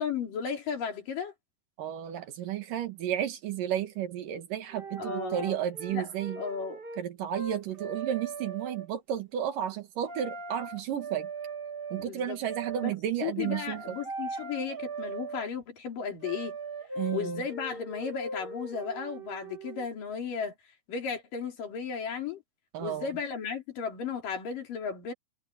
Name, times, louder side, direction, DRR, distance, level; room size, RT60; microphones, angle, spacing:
voice 1, 0.0-1.3 5.0-5.6 5.9-6.1 6.4-6.8 12.0-12.4 12.8-12.9 13.2-16.6 17.1-20.5 20.9-22.4 22.8-25.1, left 6 dB, 85° left, 5.3 m, -35 dB
voice 2, 1.8-6.4 7.0-11.3 11.9-14.0 17.0-17.4 22.7-23.1, right 10 dB, 85° right, 3.3 m, -32 dB
sound 1, 4.3-4.4 4.7-7.0 7.3-8.9 10.0-12.1 12.4-12.9 13.4-15.4 16.2-19.9, right 3 dB, 30° right, 1.0 m, -39 dB
omnidirectional pair, 3.7 m